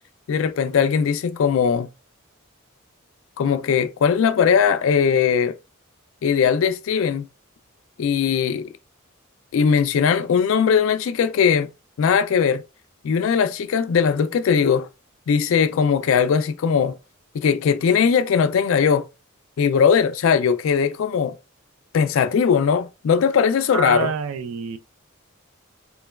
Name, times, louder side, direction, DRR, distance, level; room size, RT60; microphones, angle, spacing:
voice 1, 0.3-1.9 3.4-5.5 6.2-7.3 8.0-8.7 9.5-11.7 12.0-12.6 13.0-14.9 15.3-17.0 17.3-19.1 19.6-21.3 21.9-24.1, left 6 dB, 70° left, 0.3 m, -19 dB
voice 2, 23.7-24.8, right 6 dB, 80° right, 0.4 m, -27 dB
3.0 x 2.2 x 2.2 m
head